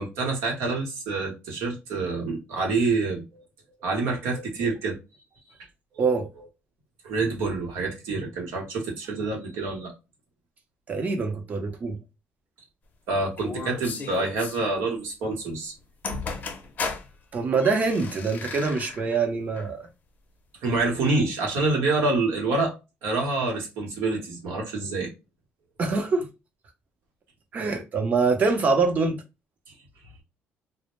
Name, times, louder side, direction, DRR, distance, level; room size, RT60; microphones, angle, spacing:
voice 1, 0.0-3.4 3.8-5.0 5.9-6.2 7.0-9.9 13.1-15.7 20.6-22.7 23.0-25.1, right 3 dB, 85° right, 0.9 m, -27 dB
voice 2, 6.0-6.3 10.9-12.0 17.3-19.9 25.8-26.3 27.5-29.2, right 4 dB, 40° right, 0.7 m, -24 dB
sound 1, 13.4-14.6 15.8-15.9 16.0-17.1 17.5-19.2 19.5-19.7 20.8-20.9, left 4 dB, 40° left, 0.6 m, -35 dB
2.0 x 2.0 x 3.0 m
cardioid pair, 120°, 4 cm